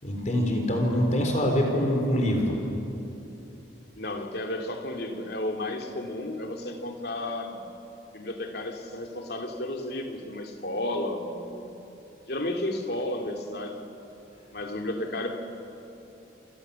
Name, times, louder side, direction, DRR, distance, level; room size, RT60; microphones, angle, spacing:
voice 1, 0.0-2.6, equal, 35° left, 2 dB, 4.1 m, -24 dB
voice 2, 4.0-7.6 8.1-11.7 12.3-13.8 14.5-15.4, left 1 dB, 55° left, 3 dB, 2.6 m, -32 dB
28.5 x 28.5 x 7.1 m, 2.9 s
head